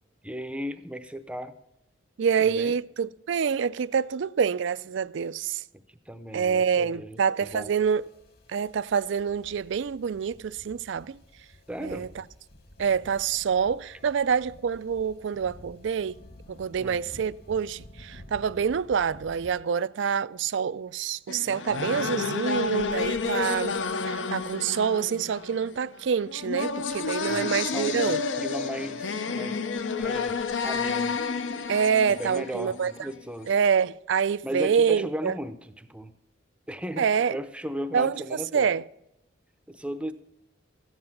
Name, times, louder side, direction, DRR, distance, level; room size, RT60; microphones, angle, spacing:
voice 1, 0.2-1.5 2.4-2.7 6.1-7.7 11.7-12.1 16.8-17.0 27.3-29.6 30.0-31.2 32.2-33.5 34.4-36.1 36.7-38.7 39.7-40.1, equal, 5° right, 0.6 m, -36 dB
voice 2, 2.2-5.6 6.3-8.0 8.5-11.2 11.8-12.2 12.8-16.2 16.5-23.8 24.1-28.2 31.7-32.9 33.5-35.3 37.0-37.4 37.9-38.2 38.5-38.8, right 6 dB, 70° right, 0.4 m, -26 dB
sound 1, 7.4-19.6, left 1 dB, 50° left, 1.9 m, -51 dB
sound 2, 21.3-33.2, left 5 dB, 70° left, 0.6 m, -30 dB
14.0 x 9.6 x 5.8 m
head